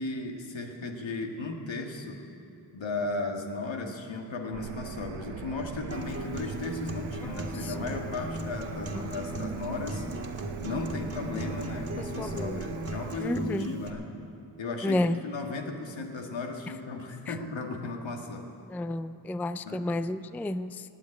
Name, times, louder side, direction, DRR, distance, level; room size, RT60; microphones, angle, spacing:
voice 1, 0.0-2.2 2.7-10.1 10.6-14.1 14.6-18.5 19.6-19.9, left 3 dB, 75° left, 3 dB, 1.9 m, -36 dB
sound 1, 4.5-13.2, right 6 dB, 80° right, 0.9 m, -40 dB
Acoustic guitar, 5.9-13.9, right 1 dB, 30° right, 1.9 m, -37 dB
voice 2, 7.3-7.7 12.0-12.6 13.2-13.7 14.8-15.2 18.7-20.8, left 1 dB, 5° left, 13 dB, 0.3 m, -31 dB
19.0 x 7.4 x 9.4 m, 2.7 s
cardioid pair, 65°, 46 cm